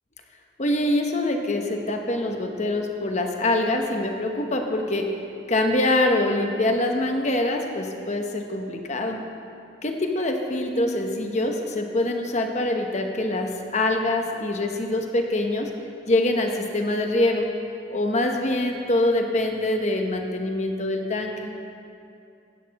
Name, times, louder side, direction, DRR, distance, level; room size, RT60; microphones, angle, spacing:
voice 1, 0.6-5.1 5.5-9.2 9.8-15.7 16.1-17.5 17.9-21.3, left 1 dB, 40° left, 3 dB, 0.9 m, -24 dB
16.5 x 8.3 x 4.2 m, 2.6 s
head